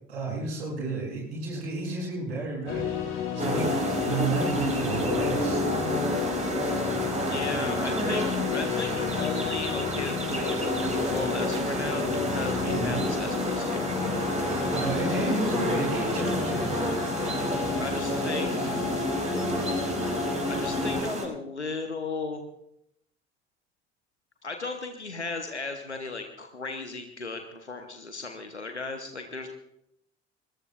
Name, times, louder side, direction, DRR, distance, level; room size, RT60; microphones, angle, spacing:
voice 1, 0.1-3.7 4.1-5.6 12.6-13.0 14.7-16.7, right 3 dB, 75° right, -4 dB, 6.7 m, -32 dB
sound 1, 2.7-21.0, left 6 dB, 60° left, 6.0 m, -31 dB
sound 2, 3.4-21.2, right 1 dB, 20° right, 5.6 m, -30 dB
voice 2, 7.3-13.9 17.8-18.8 20.5-22.4 24.4-29.5, left 3 dB, 90° left, 5 dB, 0.9 m, -36 dB
23.5 x 21.0 x 2.4 m, 0.78 s
figure-of-eight pair, 55°, 33 cm